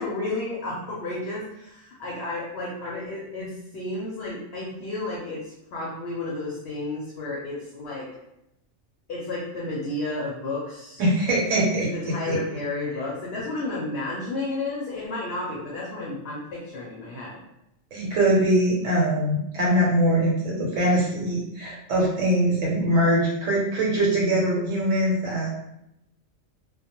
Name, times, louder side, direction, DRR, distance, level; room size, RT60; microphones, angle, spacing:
voice 1, 0.0-8.1 9.1-11.0 11.9-17.4, left 2 dB, 60° left, -5 dB, 0.7 m, -32 dB
voice 2, 11.0-12.4 17.9-25.5, right 1 dB, 70° right, -4 dB, 1.1 m, -22 dB
2.2 x 2.2 x 2.9 m, 0.83 s
omnidirectional pair, 1.4 m